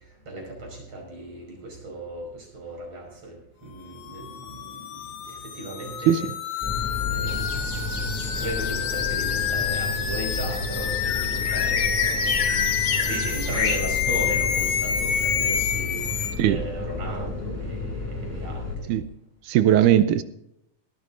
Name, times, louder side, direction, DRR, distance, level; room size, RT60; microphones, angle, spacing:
voice 1, 0.3-3.4 3.6-5.0 5.2-6.3 7.0-8.1 8.4-18.9, right 1 dB, 45° right, 6.6 m, -36 dB
sound 1, 4.1-16.3, left 8 dB, 80° left, 3.2 m, -28 dB
sound 2, 6.6-18.8, left 3 dB, 5° right, 1.9 m, -32 dB
sound 3, 7.3-13.8, left 6 dB, 55° left, 2.7 m, -31 dB
voice 2, 19.5-20.2, right 11 dB, 80° right, 1.9 m, -18 dB
20.0 x 14.5 x 2.6 m
omnidirectional pair, 4.1 m